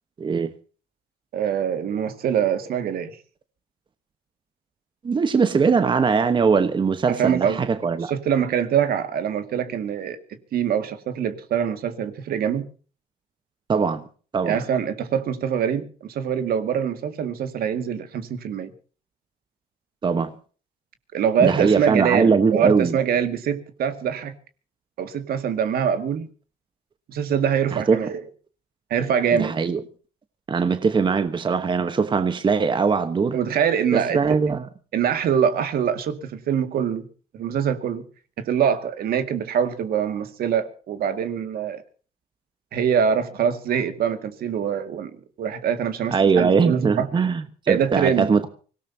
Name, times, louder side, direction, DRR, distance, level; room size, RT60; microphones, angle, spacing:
voice 1, 0.2-0.5 5.0-8.1 13.7-14.0 14.3-14.6 20.0-20.3 21.4-23.0 27.7-28.0 29.3-29.8 30.5-33.4 33.9-34.7 46.1-48.5, right 5 dB, 30° right, 1.1 m, -21 dB
voice 2, 1.3-3.1 7.1-7.6 8.1-12.6 14.5-18.7 21.1-24.3 25.0-26.3 27.1-28.2 28.9-29.5 33.3-34.4 34.9-37.1 37.3-38.0 38.4-41.8 42.7-45.1 45.4-47.1 47.7-48.3, right 8 dB, 60° right, 2.1 m, -24 dB
24.5 x 17.5 x 2.8 m
cardioid pair, 110°, 17 cm